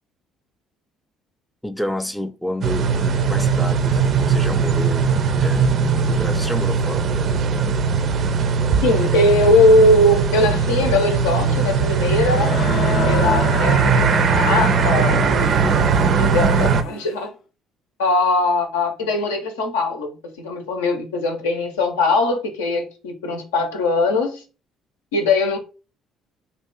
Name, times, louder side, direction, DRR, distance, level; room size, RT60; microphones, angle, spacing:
voice 1, 1.6-7.5, equal, 5° left, 0.4 m, -30 dB
sound 1, 2.6-16.8, right 5 dB, 55° right, 0.4 m, -19 dB
voice 2, 8.8-15.5 15.7-17.3 18.0-20.1 20.4-24.4 25.1-25.6, left 2 dB, 90° left, 0.7 m, -20 dB
Crowd, 12.1-17.2, left 5 dB, 55° left, 0.5 m, -29 dB
2.7 x 2.4 x 3.8 m
hypercardioid pair, 60°, 0 cm